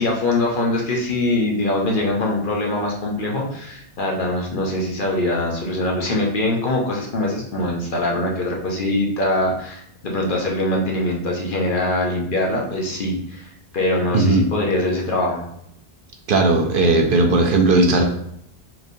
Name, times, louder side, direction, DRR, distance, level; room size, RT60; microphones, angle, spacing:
voice 1, 0.0-15.5, left 1 dB, 55° left, -1 dB, 1.0 m, -23 dB
voice 2, 14.1-14.4 16.3-18.0, right 2 dB, 60° right, 2 dB, 0.7 m, -16 dB
4.7 x 3.2 x 2.6 m, 0.74 s
omnidirectional pair, 1.1 m